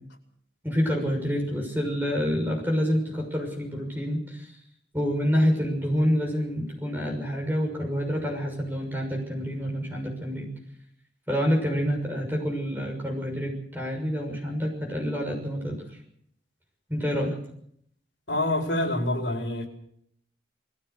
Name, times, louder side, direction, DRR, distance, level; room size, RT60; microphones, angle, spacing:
voice 1, 0.6-4.5 4.9-10.5 11.3-15.8 16.9-17.4, equal, 10° right, 0 dB, 6.5 m, -27 dB
voice 2, 18.3-19.7, left 1 dB, 70° left, 2 dB, 4.9 m, -26 dB
21.0 x 16.0 x 8.2 m, 0.70 s
head